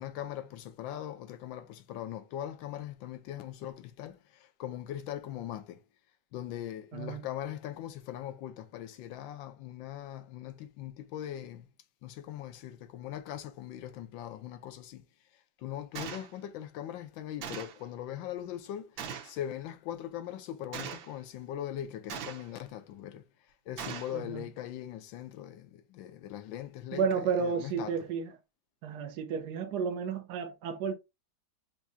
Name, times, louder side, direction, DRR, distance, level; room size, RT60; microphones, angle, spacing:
voice 1, 0.0-5.8 6.3-11.7 12.0-15.0 15.6-23.2 23.7-27.9, left 11 dB, 80° left, 1.4 m, -40 dB
Gunshot gunfire, 16.0-16.3 17.4-17.8 19.0-19.4 20.7-21.1 22.1-22.6 23.8-24.2, right 7 dB, 90° right, 1.7 m, -40 dB
voice 2, 24.1-24.4 26.9-28.3 28.8-31.0, right 6 dB, 65° right, 1.1 m, -32 dB
7.2 x 2.7 x 2.6 m
omnidirectional pair, 2.1 m